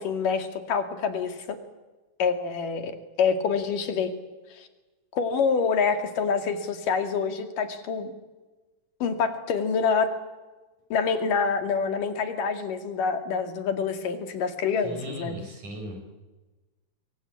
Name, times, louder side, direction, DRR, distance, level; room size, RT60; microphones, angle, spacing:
voice 1, 0.0-1.4 2.2-2.9 3.2-4.1 4.6-4.7 5.1-8.1 9.0-10.1 10.9-15.4, left 5 dB, 85° left, 7 dB, 3.9 m, -26 dB
voice 2, 14.8-16.2, equal, 70° right, 4 dB, 7.7 m, -38 dB
24.5 x 24.0 x 8.5 m, 1.2 s
omnidirectional pair, 3.7 m